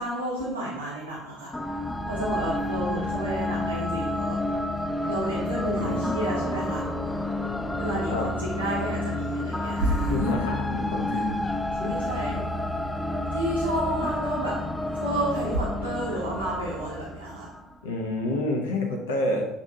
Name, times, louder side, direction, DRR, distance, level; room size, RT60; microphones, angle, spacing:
voice 1, 0.0-1.5 2.1-4.4 5.0-6.8 7.8-10.2 11.1-11.2 11.8-12.4 13.3-14.6 14.9-17.5, right 1 dB, 90° right, -7 dB, 0.9 m, -30 dB
sound 1, 1.5-17.7, left 1 dB, 10° left, 0.4 m, -30 dB
voice 2, 5.7-6.0 8.1-8.3 10.1-11.4 11.8-12.0 12.3-12.5 17.8-19.5, left 2 dB, 75° left, 2 dB, 0.7 m, -28 dB
7.0 x 2.7 x 2.7 m, 0.87 s
figure-of-eight pair, 60°, 0 cm